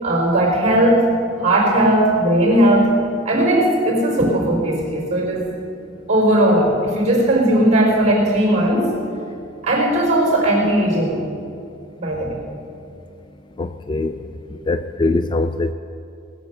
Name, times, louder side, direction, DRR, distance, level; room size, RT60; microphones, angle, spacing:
voice 1, 0.0-1.1 1.4-3.0 3.2-5.5 6.1-8.9 9.6-11.3 12.0-12.4, right 1 dB, 35° right, -2 dB, 4.2 m, -17 dB
voice 2, 13.6-14.1 14.7-15.7, left 2 dB, 25° left, 10 dB, 0.3 m, -21 dB
20.0 x 7.1 x 6.6 m, 2.6 s
head